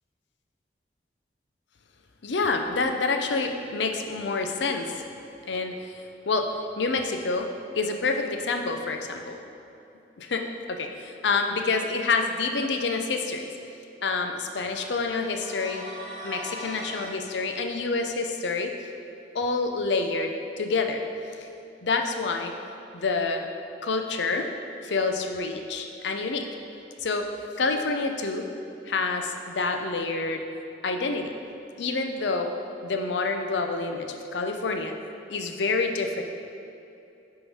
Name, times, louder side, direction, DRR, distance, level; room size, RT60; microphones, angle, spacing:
voice 1, 2.2-5.0 5.4-5.9 6.3-6.5 6.8-7.5 7.7-9.4 10.2-13.5 14.0-15.8 16.2-18.7 19.3-21.0 21.4-21.5 21.8-22.5 22.9-23.5 23.8-24.5 24.8-26.5 27.0-27.3 27.6-28.5 28.9-30.4 30.8-31.3 31.8-32.5 32.8-34.9 35.3-36.2, left 3 dB, 80° left, 4 dB, 0.6 m, -27 dB
sound 1, 15.0-17.2, equal, 20° right, 1.6 m, -39 dB
9.7 x 3.8 x 4.3 m, 2.8 s
head